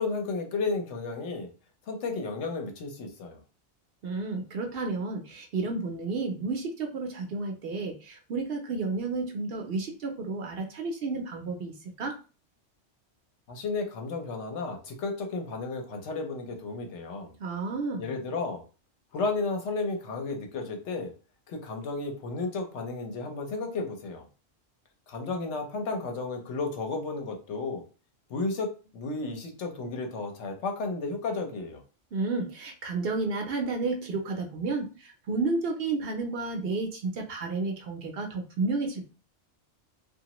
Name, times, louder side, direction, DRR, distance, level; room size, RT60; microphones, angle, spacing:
voice 1, 0.0-1.5 1.9-3.4 13.5-17.3 18.0-18.6 19.1-21.1 21.5-24.2 25.1-27.8 28.3-31.8, left 3 dB, 75° left, 4 dB, 1.0 m, -33 dB
voice 2, 4.0-11.7 12.0-12.1 17.4-18.1 32.1-39.0, right 3 dB, 60° right, 3 dB, 0.7 m, -31 dB
2.9 x 2.4 x 2.9 m, 0.35 s
omnidirectional pair, 1.2 m